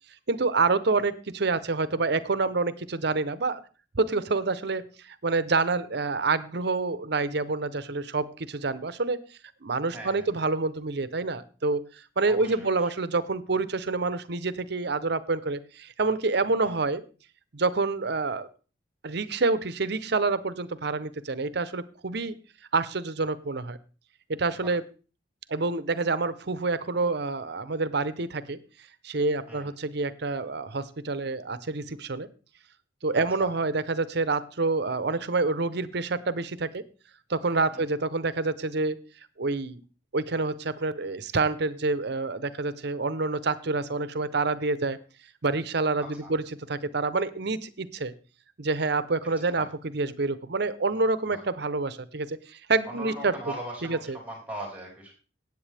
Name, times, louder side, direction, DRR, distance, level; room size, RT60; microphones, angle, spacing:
voice 1, 0.3-3.6 4.0-9.2 9.6-11.8 12.2-17.0 17.5-18.5 19.0-22.4 22.7-23.8 24.3-24.8 25.5-28.6 29.0-32.3 33.0-36.8 37.3-39.0 39.4-39.8 40.1-45.0 45.4-48.1 48.6-49.7 49.9-53.3 53.8-54.2, right 3 dB, 65° right, 14 dB, 0.8 m, -27 dB
voice 2, 9.9-10.3 12.3-12.9 16.6-16.7 24.6-24.7 29.5-29.7 33.1-33.5 37.7-37.8 46.0-46.3 49.6-49.7 51.3-51.4 52.8-55.1, right 1 dB, 10° right, -1 dB, 4.2 m, -40 dB
17.5 x 8.2 x 3.4 m, 0.36 s
head